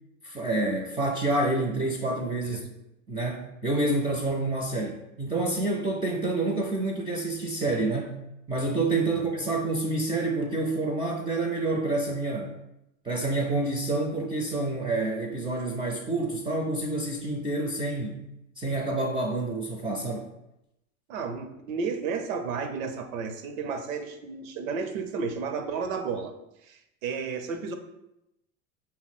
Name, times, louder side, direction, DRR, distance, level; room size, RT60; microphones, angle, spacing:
voice 1, 0.2-2.6 3.1-8.2 8.5-12.6 13.0-18.2 18.6-20.3, right 2 dB, 15° right, 1 dB, 0.5 m, -28 dB
voice 2, 21.1-26.3 26.6-27.7, right 5 dB, 80° right, 7 dB, 0.7 m, -32 dB
5.5 x 2.1 x 4.1 m, 0.87 s
hypercardioid pair, 90°, 40 cm